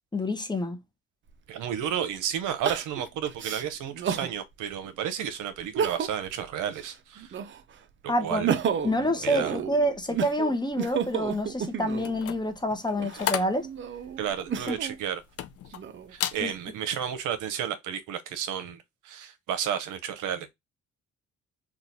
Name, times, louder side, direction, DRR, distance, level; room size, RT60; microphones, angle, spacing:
voice 1, 0.1-0.8 8.1-8.4 8.8-13.7 14.7-14.8 16.4-16.5, equal, 15° left, 0.7 m, -27 dB
Crying sobbing, 1.3-1.4 2.6-4.3 4.9-5.0 5.6-6.3 6.7-7.7 8.2-12.2 12.9-15.0 15.5-16.3, right 7 dB, 40° right, 0.5 m, -32 dB
voice 2, 1.5-7.4 8.0-8.5 9.2-9.6 14.2-15.2 16.1-20.5, right 9 dB, 85° right, 0.7 m, -32 dB
sound 1, 12.0-15.8 16.1-16.5 16.9-17.2, left 11 dB, 50° left, 0.4 m, -34 dB
3.0 x 2.3 x 3.8 m
cardioid pair, 90°, 30 cm